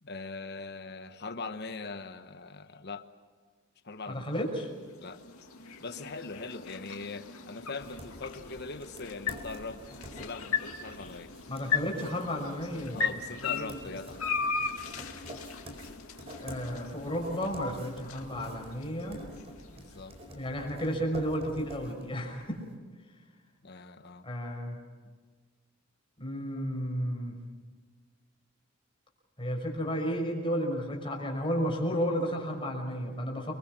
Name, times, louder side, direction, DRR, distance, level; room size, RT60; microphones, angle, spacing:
voice 1, 0.0-3.1 3.8-4.2 5.0-5.2 5.8-11.3 12.9-14.2 19.7-20.1 23.6-24.2, left 3 dB, 50° left, 8 dB, 1.2 m, -41 dB
voice 2, 4.1-4.7 11.5-13.1 13.4-13.8 16.4-19.2 20.4-22.6 24.2-24.8 26.2-27.4 29.4-33.5, equal, 25° left, 1 dB, 5.9 m, -32 dB
sound 1, 4.2-20.4, left 6 dB, 85° left, 2.4 m, -38 dB
sound 2, 7.8-22.6, equal, 30° right, 4.6 m, -48 dB
30.0 x 23.0 x 6.2 m, 1.5 s
head